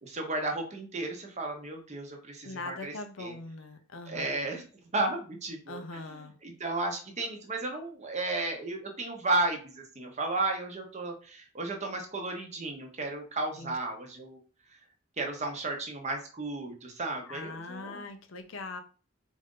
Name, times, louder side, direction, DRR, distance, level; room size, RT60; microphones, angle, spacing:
voice 1, 0.0-3.4 4.1-14.4 14.7-14.8 15.2-18.0, right 2 dB, 35° right, 2 dB, 0.9 m, -34 dB
voice 2, 2.4-4.5 5.7-6.3 13.6-13.7 17.3-18.8, left 3 dB, 90° left, 7 dB, 0.7 m, -41 dB
4.1 x 2.6 x 3.7 m, 0.38 s
head